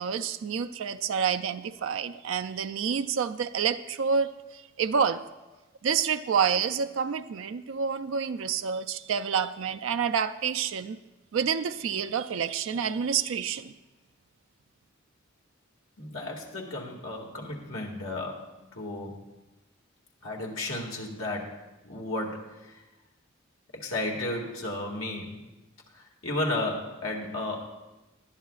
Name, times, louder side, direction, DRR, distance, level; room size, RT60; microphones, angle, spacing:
voice 1, 0.0-5.2 5.8-11.0 11.3-13.7, right 6 dB, 70° right, 9 dB, 0.4 m, -28 dB
voice 2, 16.0-19.2 20.2-21.5 21.8-22.7 23.7-25.4 25.9-27.7, left 2 dB, 85° left, 0 dB, 2.1 m, -33 dB
20.0 x 11.0 x 2.4 m, 1.1 s
head